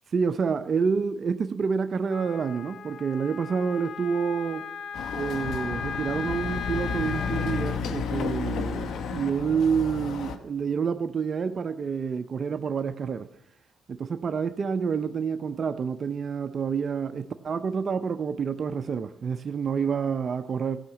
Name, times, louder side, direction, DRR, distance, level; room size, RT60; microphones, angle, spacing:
voice 1, 0.1-4.7 5.1-13.3 13.9-20.8, right 6 dB, 45° right, 0.5 m, -28 dB
Wind instrument woodwind instrument, 2.1-7.8, left 6 dB, 55° left, 0.4 m, -37 dB
Chatter / Car passing by / Motorcycle, 4.9-10.4, left 6 dB, 75° left, 0.9 m, -32 dB
15.5 x 5.7 x 7.2 m
cardioid pair, 90°, 0 cm